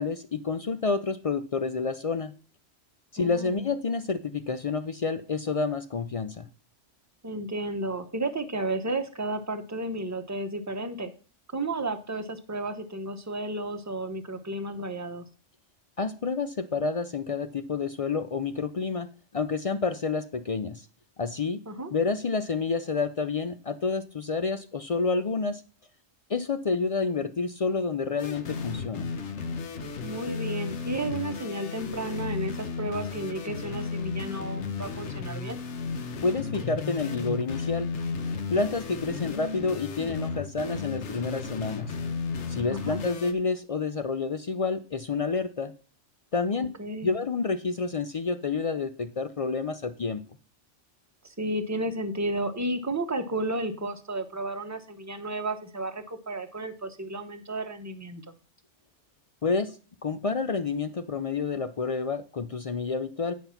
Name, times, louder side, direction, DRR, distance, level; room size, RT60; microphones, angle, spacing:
voice 1, 0.0-2.3 3.1-6.5 16.0-19.1 19.3-20.8 21.2-21.6 21.9-25.6 26.3-29.1 36.2-37.9 38.5-41.9 42.5-45.7 46.3-46.7 47.0-50.2 59.4-59.8 60.0-63.3, left 4 dB, 55° left, 11 dB, 0.4 m, -29 dB
voice 2, 3.2-3.7 7.2-11.1 11.5-15.2 21.7-21.9 30.0-35.6 42.7-43.0 46.5-47.1 51.2-58.3, right 1 dB, 15° right, 7 dB, 0.8 m, -33 dB
sound 1, 28.2-43.3, left 4 dB, 75° left, 1.2 m, -34 dB
9.3 x 5.3 x 5.7 m, 0.39 s
omnidirectional pair, 1.2 m